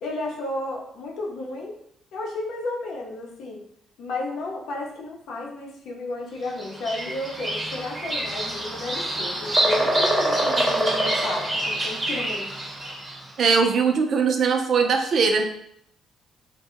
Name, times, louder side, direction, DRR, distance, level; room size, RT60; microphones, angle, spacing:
voice 1, 0.0-1.7 2.1-3.6 4.0-12.5, left 2 dB, 80° left, -1 dB, 0.6 m, -32 dB
Bird vocalization bird call bird song, 6.6-13.2, right 1 dB, 20° right, 0.6 m, -25 dB
voice 2, 13.4-15.5, right 5 dB, 60° right, 5 dB, 0.4 m, -20 dB
2.1 x 2.0 x 3.7 m, 0.70 s
cardioid pair, 90°, 0 cm